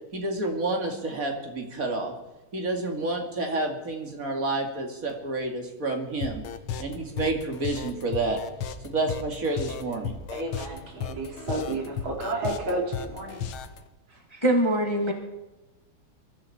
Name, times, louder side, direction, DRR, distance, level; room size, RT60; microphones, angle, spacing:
voice 1, 0.1-2.1 2.5-6.4 6.8-8.4 8.8-10.2, right 2 dB, 40° right, 3 dB, 2.8 m, -29 dB
sound 1, 6.2-13.8, left 7 dB, 80° left, 1.9 m, -34 dB
voice 2, 10.3-13.5 14.1-14.2, right 2 dB, 70° right, 1 dB, 3.7 m, -31 dB
voice 3, 14.3-15.1, right 1 dB, 15° left, 3 dB, 1.5 m, -23 dB
23.0 x 13.5 x 4.4 m, 1.1 s
omnidirectional pair, 2.3 m